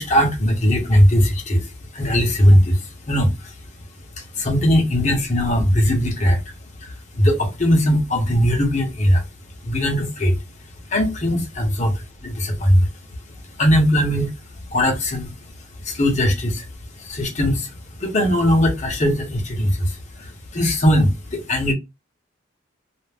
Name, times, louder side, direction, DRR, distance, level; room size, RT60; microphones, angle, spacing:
voice 1, 0.0-3.5 4.2-6.5 6.8-9.3 9.6-10.4 10.9-12.9 13.6-15.5 15.8-16.7 16.9-21.7, equal, 35° left, 0.8 m, -19 dB
2.5 x 2.1 x 3.3 m
head